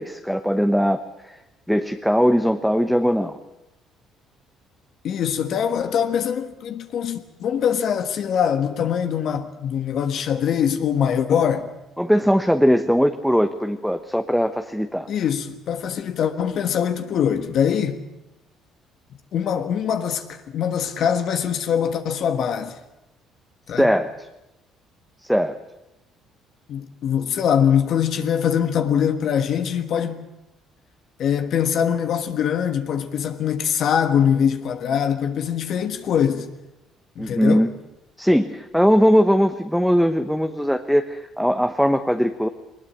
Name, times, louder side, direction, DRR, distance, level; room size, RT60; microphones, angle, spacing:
voice 1, 0.0-1.3 1.7-3.4 12.0-15.1 23.8-24.1 25.3-25.6 37.2-37.7 38.2-42.5, equal, ahead, 1.0 m, -20 dB
voice 2, 5.0-11.7 15.1-18.0 19.3-22.8 23.7-23.9 26.7-30.2 31.2-36.5 37.2-37.7, left 8 dB, 60° left, 1.4 m, -23 dB
21.0 x 20.0 x 8.5 m
cardioid pair, 105°, 0 cm